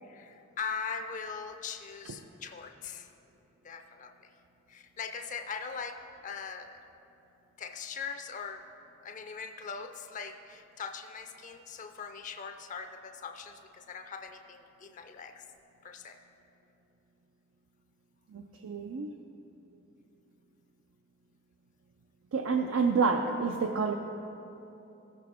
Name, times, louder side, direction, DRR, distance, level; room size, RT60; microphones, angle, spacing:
voice 1, 0.0-3.1 3.6-4.3 4.7-6.7 7.6-8.6 9.0-15.4 15.8-16.2, left 5 dB, 40° left, 7 dB, 0.4 m, -41 dB
voice 2, 18.3-19.1 22.3-23.9, right 5 dB, 90° right, 4 dB, 0.4 m, -28 dB
14.5 x 6.2 x 4.2 m, 2.9 s
head